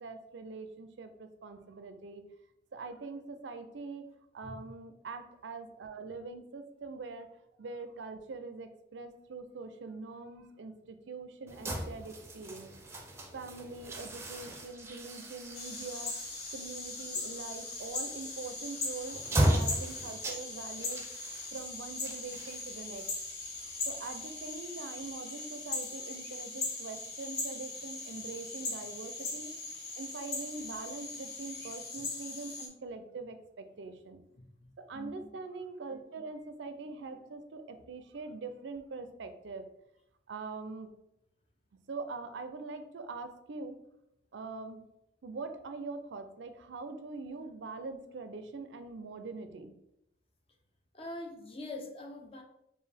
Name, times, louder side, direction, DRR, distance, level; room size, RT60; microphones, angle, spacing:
voice 1, 0.0-2.2 2.7-4.0 4.3-7.3 7.6-13.0 13.3-16.1 16.5-21.1 21.5-23.1 23.9-29.5 30.0-34.2 34.8-39.7 40.3-40.9 41.9-43.8 44.3-44.8 45.2-49.7, right 3 dB, 80° right, 8 dB, 0.5 m, -43 dB
sound 1, 11.5-24.5, right 1 dB, 15° right, 0.5 m, -37 dB
sound 2, 15.5-32.7, left 3 dB, 60° left, 0.9 m, -40 dB
voice 2, 34.9-35.3 50.9-52.4, left 2 dB, 30° left, 3 dB, 0.6 m, -43 dB
4.6 x 2.6 x 3.4 m, 0.82 s
head